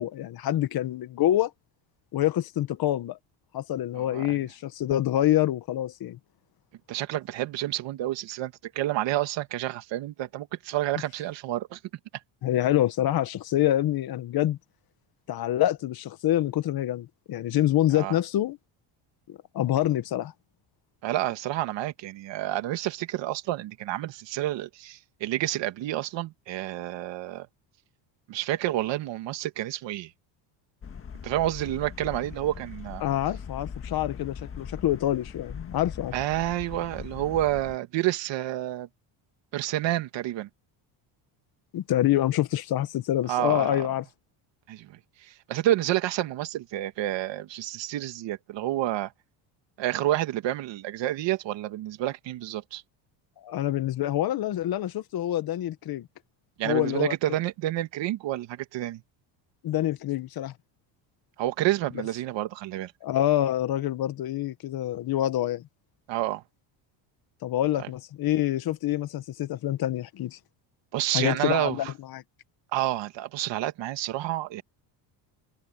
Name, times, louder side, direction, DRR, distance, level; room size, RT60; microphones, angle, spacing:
voice 1, 0.0-1.5 2.1-3.2 3.5-6.2 12.4-14.6 15.3-18.6 19.5-20.3 33.0-36.1 41.7-44.0 53.4-56.1 56.6-57.1 59.6-60.5 63.0-65.6 67.4-70.4 71.1-72.2, left 13 dB, 50° left, 1.6 m, -26 dB
voice 2, 4.0-4.4 6.9-11.8 17.9-18.2 21.0-27.5 28.3-30.1 31.2-33.0 36.1-38.9 39.5-40.5 43.3-43.8 44.7-49.1 49.8-52.8 56.6-59.0 61.4-62.9 66.1-66.4 70.9-71.9 72.7-74.6, right 14 dB, 60° right, 2.5 m, -29 dB
sound 1, 30.8-37.8, left 6 dB, 25° left, 1.7 m, -41 dB
cardioid pair, 135°, 48 cm